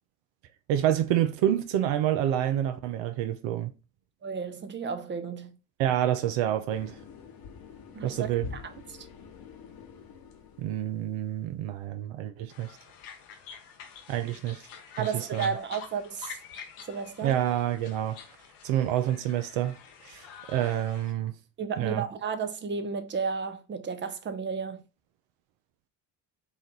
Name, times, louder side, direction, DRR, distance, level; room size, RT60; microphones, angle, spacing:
voice 1, 0.7-3.7 5.8-7.0 8.0-8.5 10.6-12.7 14.1-14.6 15.0-15.1 15.3-15.5 17.2-18.2 18.6-19.8 20.0-21.4 21.8-22.0, right 11 dB, 70° right, 0.7 m, -28 dB
voice 2, 4.2-5.6 7.9-8.7 9.0-9.1 15.0-16.4 16.9-17.4 21.6-24.8, right 5 dB, 25° right, 0.7 m, -33 dB
sound 1, 6.7-11.3, left 6 dB, 45° left, 1.0 m, -46 dB
sound 2, 12.5-21.1, left 7 dB, 75° left, 1.0 m, -47 dB
4.1 x 2.5 x 4.0 m
hypercardioid pair, 55°, 48 cm